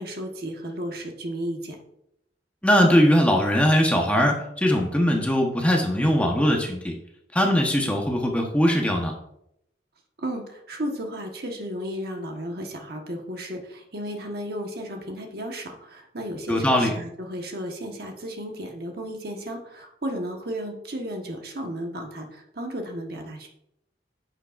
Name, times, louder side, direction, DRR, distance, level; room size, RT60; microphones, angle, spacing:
voice 1, 0.0-1.8 10.2-23.5, equal, 60° right, 2 dB, 1.3 m, -34 dB
voice 2, 2.6-6.9 7.3-9.1 16.5-16.9, equal, 5° left, 1 dB, 1.0 m, -20 dB
10.0 x 6.5 x 2.5 m, 0.77 s
head